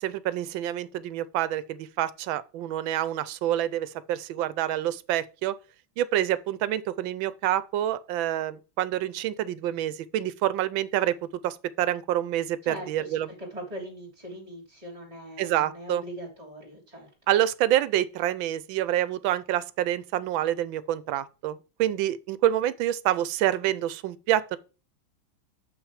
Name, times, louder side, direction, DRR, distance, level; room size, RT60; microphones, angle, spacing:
voice 1, 0.0-5.5 6.0-11.1 11.4-13.3 15.4-16.0 17.3-24.6, right 12 dB, 80° right, 1.3 m, -27 dB
voice 2, 12.6-17.1, right 1 dB, 20° right, 2.6 m, -41 dB
7.0 x 6.0 x 4.9 m
omnidirectional pair, 2.2 m